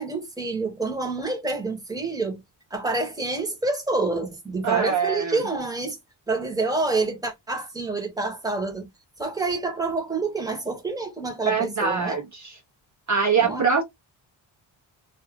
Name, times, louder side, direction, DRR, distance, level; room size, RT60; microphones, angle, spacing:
voice 1, 0.0-2.4 2.7-6.0 6.3-8.9 9.2-12.2 13.4-13.6, right 3 dB, 10° right, 1.0 m, -27 dB
voice 2, 4.6-5.4 11.5-12.6 13.1-13.8, right 5 dB, 40° right, 0.7 m, -23 dB
2.5 x 2.4 x 3.3 m
wide cardioid pair, 150°, 47 cm